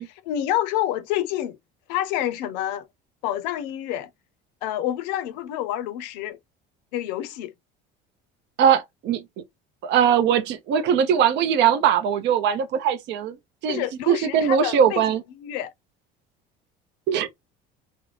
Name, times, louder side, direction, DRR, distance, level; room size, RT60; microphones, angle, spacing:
voice 1, 0.0-1.6 1.9-2.9 3.2-4.1 4.6-6.4 6.9-7.5 13.7-15.0 15.4-15.7, left 12 dB, 85° left, 0.5 m, -28 dB
voice 2, 8.6-9.2 9.8-13.3 13.6-15.2 17.1-17.3, right 8 dB, 55° right, 0.5 m, -20 dB
2.5 x 2.0 x 3.0 m
supercardioid pair, 90°, 21 cm